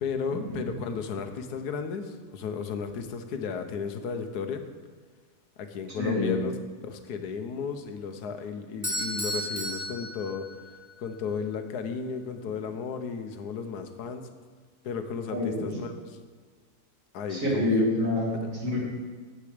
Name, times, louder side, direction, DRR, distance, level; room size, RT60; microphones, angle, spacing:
voice 1, 0.0-4.6 5.6-6.5 6.9-10.5 11.0-14.2 14.8-16.2 17.1-17.9 18.3-18.5, left 6 dB, 90° left, 7 dB, 1.4 m, -34 dB
voice 2, 6.0-6.4 15.3-15.8 17.3-18.8, left 1 dB, 55° right, -4 dB, 3.1 m, -27 dB
Bell / Doorbell, 8.8-10.9, equal, 10° right, 2.0 m, -33 dB
9.9 x 8.2 x 5.0 m, 1.5 s
omnidirectional pair, 1.6 m